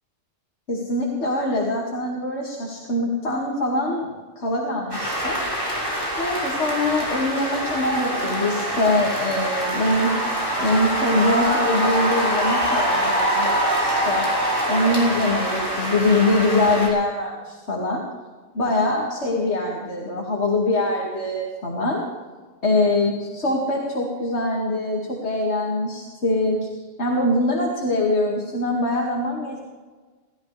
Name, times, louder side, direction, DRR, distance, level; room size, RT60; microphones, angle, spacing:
voice 1, 0.7-5.4 6.2-10.1 10.6-14.3 14.7-18.0 18.5-22.0 22.6-26.6 27.0-29.6, left 2 dB, 65° left, -2 dB, 2.6 m, -23 dB
sound 1, 4.9-16.9, equal, 20° right, 6.1 m, -24 dB
30.0 x 14.0 x 3.4 m, 1.4 s
omnidirectional pair, 1.2 m